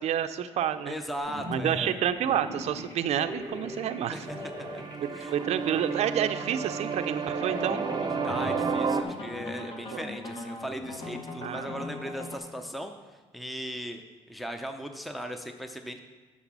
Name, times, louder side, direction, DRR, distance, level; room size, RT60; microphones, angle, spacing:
voice 1, 0.0-0.9 1.5-4.3 5.3-7.8 9.9-10.0 11.4-11.7, right 9 dB, 70° right, 10 dB, 0.5 m, -29 dB
voice 2, 0.9-2.0 4.1-4.2 5.1-5.3 8.2-16.0, equal, ahead, 6 dB, 0.6 m, -38 dB
sound 1, 1.2-9.5, left 1 dB, 25° left, 2.5 m, -42 dB
sound 2, 2.7-2.9 3.3-9.0, right 5 dB, 40° right, 0.7 m, -32 dB
sound 3, 7.4-12.4, left 2 dB, 45° left, 1.6 m, -40 dB
8.0 x 6.0 x 6.0 m, 1.4 s
cardioid pair, 105°, 11 cm